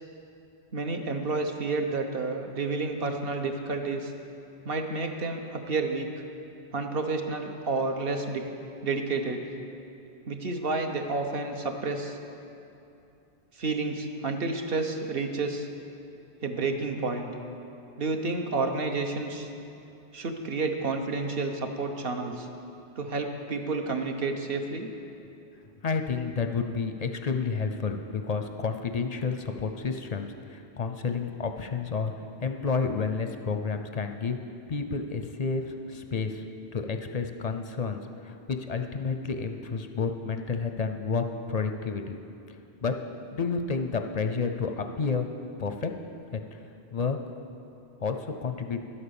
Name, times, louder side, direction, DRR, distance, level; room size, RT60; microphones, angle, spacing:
voice 1, 0.7-4.1 4.6-6.1 6.7-8.4 8.8-9.4 10.2-12.2 13.5-15.7 16.4-17.3 18.0-19.5 20.1-22.5 23.0-24.9, right 3 dB, 60° right, 4 dB, 1.1 m, -30 dB
voice 2, 25.8-32.1 32.4-34.4 34.7-36.4 36.7-42.2 42.8-43.0 43.3-45.3 45.6-45.9 46.3-46.4 46.9-47.2 48.0-48.8, left 5 dB, 45° left, 6 dB, 0.5 m, -30 dB
11.5 x 8.7 x 7.0 m, 2.7 s
omnidirectional pair, 1.1 m